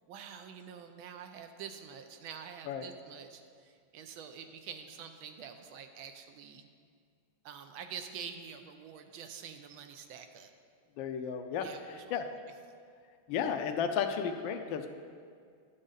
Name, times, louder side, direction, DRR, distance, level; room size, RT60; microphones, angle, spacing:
voice 1, 0.1-6.7 7.4-10.5 11.6-12.4, right 7 dB, 80° right, 6 dB, 1.4 m, -47 dB
voice 2, 11.0-12.3 13.3-14.9, left 7 dB, 75° left, 6 dB, 1.2 m, -33 dB
11.0 x 7.6 x 4.0 m, 2.2 s
omnidirectional pair, 2.3 m